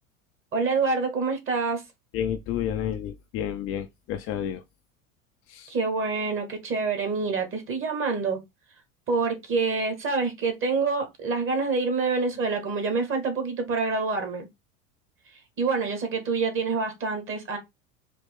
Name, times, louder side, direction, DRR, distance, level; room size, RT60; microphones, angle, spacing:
voice 1, 0.5-1.8 5.7-8.4 9.1-14.5 15.6-17.6, right 4 dB, 30° right, 1.7 m, -26 dB
voice 2, 2.1-4.6 5.5-5.7, left 9 dB, 35° left, 0.4 m, -30 dB
4.1 x 2.9 x 3.5 m
hypercardioid pair, 85°, 41 cm